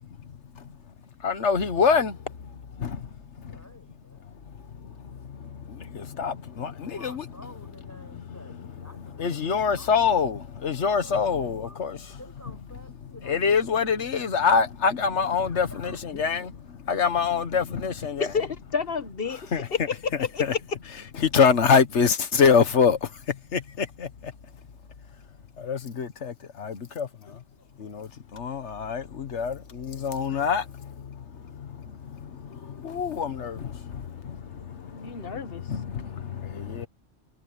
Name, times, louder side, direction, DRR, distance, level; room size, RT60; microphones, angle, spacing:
voice 1, 0.2-0.7 1.2-2.2 2.8-3.1 3.4-3.6 4.5-4.6 4.8-7.2 9.2-12.0 13.2-16.5 16.8-18.3 19.5-19.7 20.4-20.5 21.2-24.3 25.6-27.4 27.8-36.9, left 6 dB, 85° left, 1.5 m, -26 dB
voice 2, 3.4-4.3 6.8-10.0 10.8-13.9 15.4-16.5, equal, 15° left, 6.7 m, -50 dB
voice 3, 18.2-20.6 34.9-35.6, left 5 dB, 55° left, 1.4 m, -30 dB
omnidirectional pair, 1.2 m